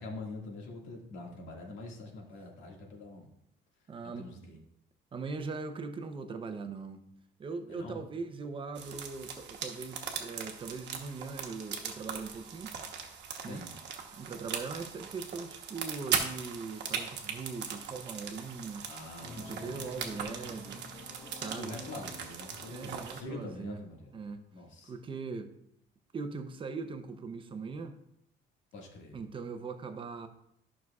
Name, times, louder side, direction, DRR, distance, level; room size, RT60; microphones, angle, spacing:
voice 1, 0.0-3.3 4.0-4.6 7.7-8.0 13.5-13.8 18.9-19.8 21.5-24.1 24.5-24.9 28.7-29.2, left 2 dB, 80° left, -1 dB, 2.0 m, -44 dB
voice 2, 3.9-4.6 5.1-7.0 7.4-12.8 13.4-13.7 14.1-18.9 19.4-20.8 21.3-21.8 22.7-23.8 24.1-24.4 24.8-25.5 26.1-28.0 29.1-30.3, right 4 dB, 25° right, 8 dB, 0.6 m, -40 dB
sound 1, 8.7-23.2, right 6 dB, 65° right, 1.1 m, -39 dB
sound 2, 19.2-24.4, left 3 dB, 25° left, 1.1 m, -50 dB
11.5 x 6.1 x 2.4 m, 0.76 s
cardioid pair, 155°, 20 cm